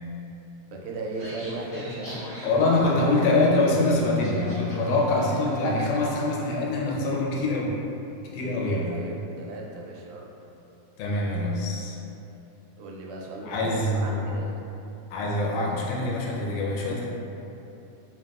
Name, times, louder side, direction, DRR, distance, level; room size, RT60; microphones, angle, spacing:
voice 1, 0.7-2.2 2.9-3.4 8.8-10.3 12.8-14.5, right 2 dB, 85° right, -1 dB, 2.0 m, -36 dB
sound 1, 1.1-6.4, equal, 40° left, 0.5 m, -41 dB
voice 2, 2.4-7.8 8.3-9.0 11.0-12.0 13.4-14.3 15.1-17.1, left 2 dB, 90° left, -2 dB, 2.1 m, -24 dB
5.2 x 2.8 x 2.3 m, 2.9 s
omnidirectional pair, 3.5 m